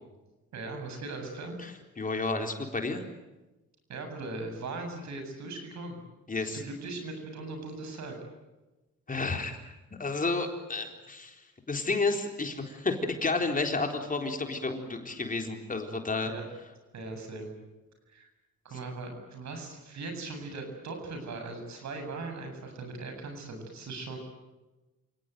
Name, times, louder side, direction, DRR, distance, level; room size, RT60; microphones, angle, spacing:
voice 1, 0.5-1.6 3.9-6.0 6.4-8.2 16.3-16.4 16.9-17.5 18.1-18.3 18.6-24.2, right 3 dB, 65° right, 5 dB, 7.9 m, -39 dB
voice 2, 2.0-3.0 6.3-6.6 9.1-9.7 10.0-11.4 11.7-16.3, left 3 dB, 25° left, 4 dB, 3.9 m, -31 dB
28.5 x 18.0 x 9.3 m, 1.1 s
cardioid pair, 90°, 30 cm